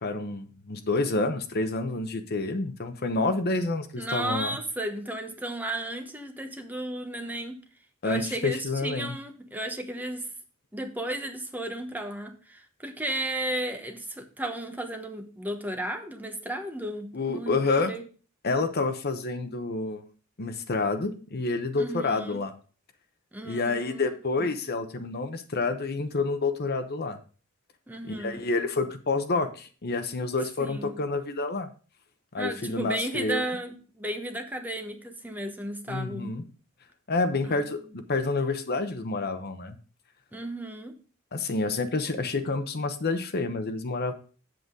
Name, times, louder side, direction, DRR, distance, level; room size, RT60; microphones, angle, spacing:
voice 1, 0.0-4.6 8.0-9.1 17.1-17.9 18.4-20.0 20.4-22.5 23.4-27.2 28.1-31.7 32.3-33.4 35.9-36.4 37.1-39.8 41.3-44.1, left 3 dB, 50° left, 8 dB, 0.9 m, -28 dB
voice 2, 4.0-7.6 8.0-10.3 10.7-18.0 21.8-22.4 23.3-24.5 27.9-28.4 30.6-30.9 32.4-36.4 37.4-37.5 40.3-41.0, right 1 dB, 10° right, 5 dB, 1.0 m, -34 dB
7.9 x 7.8 x 3.7 m, 0.38 s
head